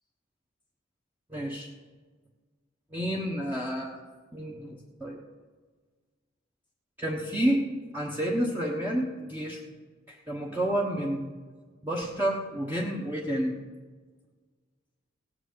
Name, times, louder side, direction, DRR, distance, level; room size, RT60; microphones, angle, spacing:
voice 1, 1.3-1.7 2.9-4.0 4.3-5.2 7.0-7.6 7.9-9.6 10.1-11.3 11.8-13.6, right 1 dB, 10° right, -3 dB, 1.2 m, -30 dB
17.5 x 6.1 x 7.9 m, 1.5 s
head